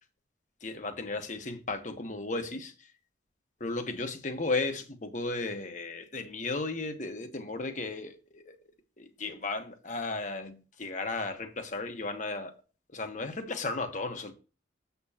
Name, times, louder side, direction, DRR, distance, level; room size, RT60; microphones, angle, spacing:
voice 1, 0.6-2.9 3.6-8.6 9.0-12.5 12.9-14.3, left 3 dB, 45° left, 1.2 m, -35 dB
7.6 x 6.9 x 2.8 m
head